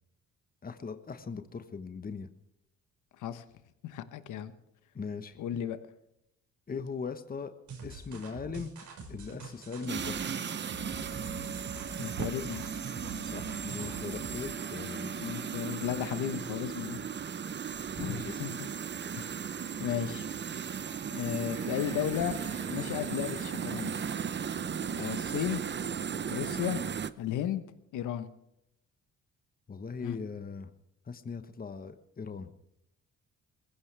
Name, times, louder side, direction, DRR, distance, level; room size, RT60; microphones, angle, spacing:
voice 1, 0.6-2.3 4.9-5.4 6.7-7.5 7.8-8.7 9.1-10.4 13.3-15.1 18.0-18.4 29.7-30.7 31.0-32.5, left 5 dB, 30° left, 9 dB, 1.2 m, -39 dB
voice 2, 3.8-4.5 5.4-5.8 12.0-12.6 15.1-17.0 18.0-18.7 19.1-19.4 19.8-20.3 21.1-22.4 22.7-24.0 25.0-25.6 26.3-26.8 27.2-27.6 27.9-28.3 30.0-30.2, left 10 dB, 80° left, 11 dB, 1.2 m, -34 dB
sound 1, 7.7-14.4, right 3 dB, 70° right, 5.9 m, -45 dB
sound 2, 9.9-27.1, right 7 dB, 35° right, 0.8 m, -36 dB
sound 3, 21.8-27.4, left 2 dB, 10° left, 1.7 m, -52 dB
21.5 x 15.5 x 3.4 m, 0.81 s
cardioid pair, 90°, 30 cm